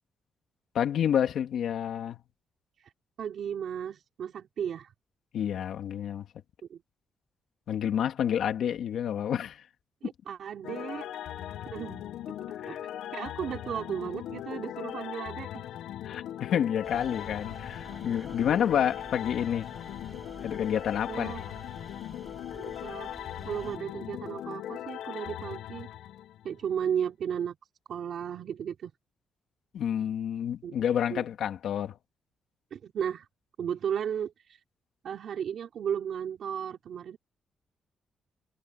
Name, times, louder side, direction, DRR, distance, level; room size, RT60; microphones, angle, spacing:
voice 1, 0.7-2.2 5.3-6.3 7.7-9.7 12.6-12.9 16.0-19.7 20.4-21.3 29.7-32.0, left 9 dB, 65° left, 2.6 m, -29 dB
voice 2, 3.2-4.9 6.7-6.8 10.0-11.1 11.7-12.0 12.7-12.8 13.1-15.7 21.1-21.4 22.6-23.2 23.4-25.9 26.4-27.6 27.9-28.9 30.6-30.7 31.1-31.2 32.7-33.3 33.6-34.6 35.0-37.2, right 8 dB, 55° right, 3.9 m, -34 dB
sound 1, 10.6-26.7, left 11 dB, 85° left, 0.6 m, -39 dB
sound 2, 16.8-23.8, right 2 dB, 15° right, 7.9 m, -48 dB
cardioid pair, 160°, 0 cm